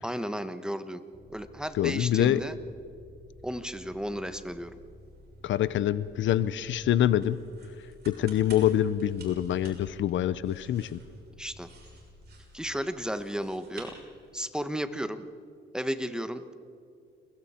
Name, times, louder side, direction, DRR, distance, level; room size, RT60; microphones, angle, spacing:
voice 1, 0.0-1.0 1.3-2.5 3.4-4.8 11.4-11.7 12.5-13.9 14.3-15.2 15.7-16.5, equal, 5° right, 10 dB, 1.2 m, -33 dB
sound 1, 1.1-14.6, left 1 dB, 30° left, 6.4 m, -54 dB
voice 2, 1.8-2.4 5.4-7.4 8.1-11.0, left 11 dB, 70° left, 16 dB, 0.7 m, -25 dB
sound 2, 4.1-14.7, right 3 dB, 55° right, 6.5 m, -53 dB
29.0 x 22.0 x 4.4 m, 2.4 s
cardioid pair, 90°, 20 cm